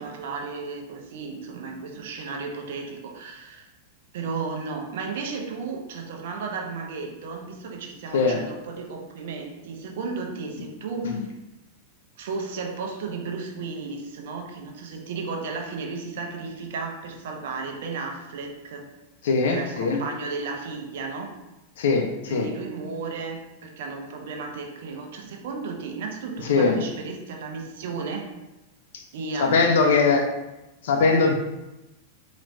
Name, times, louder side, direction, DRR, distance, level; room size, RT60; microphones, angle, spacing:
voice 1, 0.0-3.7 4.1-11.2 12.2-18.9 19.4-21.4 22.3-28.3 29.1-30.2, right 4 dB, 70° right, 2 dB, 0.8 m, -34 dB
voice 2, 19.2-20.0 21.8-22.5 26.5-26.8 28.9-29.0 29.4-30.3 30.8-31.3, left 4 dB, 75° left, 4 dB, 0.7 m, -21 dB
4.4 x 3.1 x 2.6 m, 1.0 s
hypercardioid pair, 110°, 0 cm